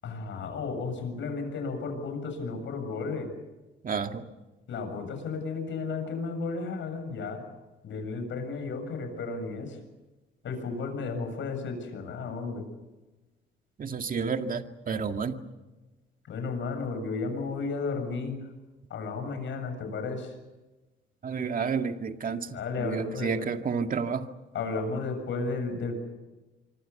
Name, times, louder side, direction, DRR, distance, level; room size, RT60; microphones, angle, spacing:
voice 1, 0.0-3.3 4.7-7.4 7.8-9.8 10.4-12.6 16.2-18.4 18.9-20.4 22.5-23.3 24.5-26.0, left 4 dB, 70° left, 6 dB, 7.3 m, -33 dB
voice 2, 3.8-4.3 13.8-15.4 21.2-22.5 22.8-24.3, right 5 dB, 45° right, 6 dB, 2.1 m, -30 dB
25.5 x 24.5 x 7.1 m, 1.1 s
cardioid pair, 90°, 20 cm